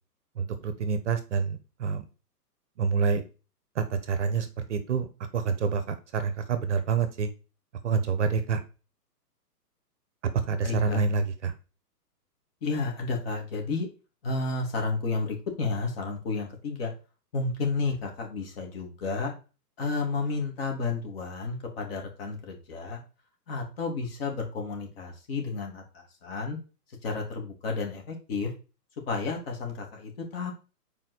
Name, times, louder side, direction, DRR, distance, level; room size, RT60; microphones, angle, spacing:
voice 1, 0.4-2.0 2.8-3.2 3.8-5.1 5.3-7.3 7.8-8.6 10.5-11.5, right 5 dB, 45° right, 10 dB, 1.0 m, -27 dB
voice 2, 10.6-11.0 12.6-13.9 14.2-16.9 17.3-19.3 19.8-23.0 23.5-26.6 27.0-28.5 29.1-30.5, left 4 dB, 35° left, 1 dB, 2.6 m, -31 dB
5.6 x 4.5 x 6.3 m, 0.33 s
hypercardioid pair, 160°, 49 cm